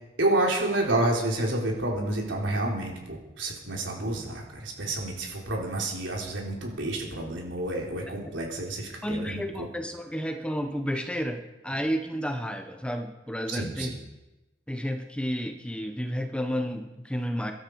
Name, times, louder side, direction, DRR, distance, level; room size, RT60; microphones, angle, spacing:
voice 1, 0.2-9.7 13.5-13.9, right 2 dB, 85° right, -1 dB, 4.0 m, -29 dB
voice 2, 9.0-13.9 14.7-17.5, equal, 5° left, 5 dB, 1.2 m, -31 dB
23.0 x 12.5 x 4.9 m, 1.0 s
head